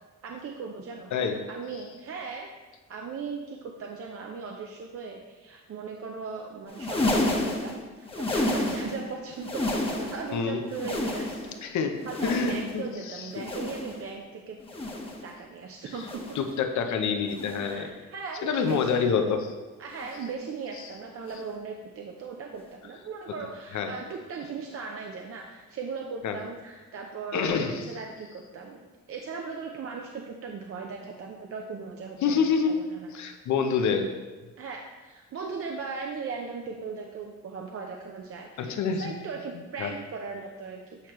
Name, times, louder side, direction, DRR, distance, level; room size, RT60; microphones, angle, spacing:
voice 1, 0.2-2.5 2.9-11.6 12.1-14.6 15.2-16.2 17.6-18.9 19.8-33.1 34.6-41.1, right 5 dB, 50° right, 1 dB, 0.6 m, -38 dB
voice 2, 1.1-1.4 10.3-10.6 11.6-13.5 16.3-17.9 18.4-19.5 23.7-23.9 26.2-26.4 27.3-27.9 32.2-32.7 33.1-34.1 38.6-39.1 39.8-39.9, left 6 dB, 70° left, 6 dB, 0.8 m, -27 dB
sound 1, 6.7-9.1 9.3-10.3 10.6-11.6 12.0-12.9 13.3-14.1 14.6-15.3 16.0-16.5 17.3-17.8 18.6-19.0 20.0-20.3 21.3-21.5 22.6-22.7, left 2 dB, 20° left, 1.1 m, -31 dB
8.3 x 4.4 x 3.1 m, 1.2 s
cardioid pair, 90°, 30 cm